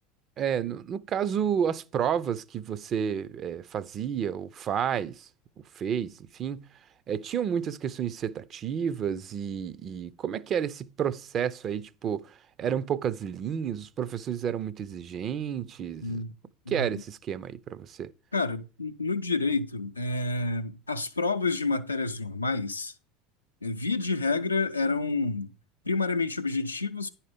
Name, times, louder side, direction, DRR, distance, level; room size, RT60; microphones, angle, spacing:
voice 1, 0.4-5.3 5.8-6.7 7.1-16.2 16.7-18.1, right 8 dB, 40° right, 0.5 m, -31 dB
voice 2, 16.0-16.3 16.7-17.0 18.3-22.9 23.6-25.5 25.9-27.1, left 3 dB, 90° left, 0.5 m, -29 dB
9.6 x 4.4 x 5.1 m
figure-of-eight pair, 75°, 0 cm